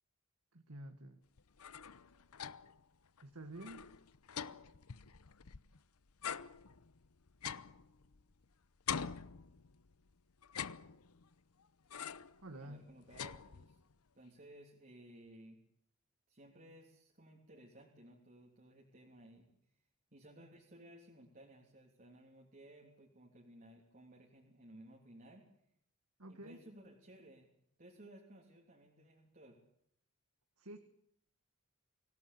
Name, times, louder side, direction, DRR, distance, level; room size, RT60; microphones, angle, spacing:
voice 1, 0.5-1.2 3.2-3.9 12.4-12.8 26.2-26.6 30.6-30.8, right 1 dB, 80° right, 8 dB, 1.8 m, -49 dB
sound 1, 1.4-2.8 3.2-3.3 3.6-5.8 6.2-8.4 8.9-9.9 10.4-11.3 11.9-12.4 12.8-13.9, left 7 dB, 90° left, 0.9 m, -45 dB
voice 2, 12.5-13.8 14.1-15.6 16.3-19.5 20.1-25.5 26.3-27.5 27.8-29.6, right 1 dB, 40° right, -1 dB, 3.3 m, -58 dB
25.0 x 17.0 x 8.7 m, 0.72 s
head